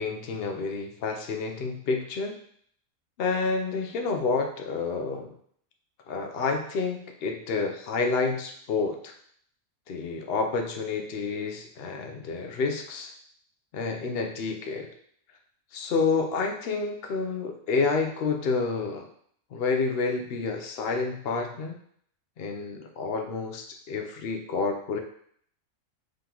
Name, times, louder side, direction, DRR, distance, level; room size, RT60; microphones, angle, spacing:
voice 1, 0.0-2.4 3.2-5.3 6.1-9.1 9.9-13.1 13.7-14.9 15.7-19.1 19.5-21.8 22.4-25.0, left 4 dB, 60° left, 4 dB, 0.7 m, -29 dB
3.8 x 3.7 x 2.9 m, 0.64 s
omnidirectional pair, 1.4 m